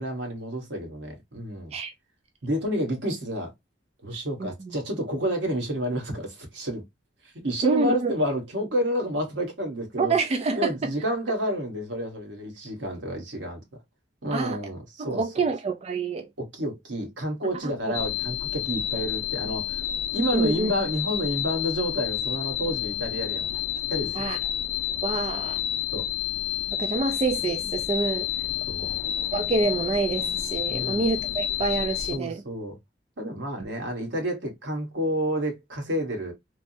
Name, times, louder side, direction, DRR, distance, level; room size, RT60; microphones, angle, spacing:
voice 1, 0.0-1.7 2.4-3.5 4.0-6.8 7.4-10.1 10.5-13.6 14.2-15.4 16.4-23.5 23.9-24.3 25.9-26.1 28.7-29.0 30.7-31.0 32.1-32.8 33.2-36.3, equal, 85° right, 1.3 m, -30 dB
voice 2, 4.4-4.7 7.6-8.1 10.0-10.9 14.3-14.6 15.0-16.3 17.8-18.0 20.3-20.7 24.1-24.4 25.0-25.6 26.8-28.3 29.3-32.4, right 3 dB, 35° right, 0.3 m, -27 dB
sound 1, 17.9-32.2, left 11 dB, 90° left, 0.4 m, -30 dB
3.3 x 2.0 x 2.6 m
head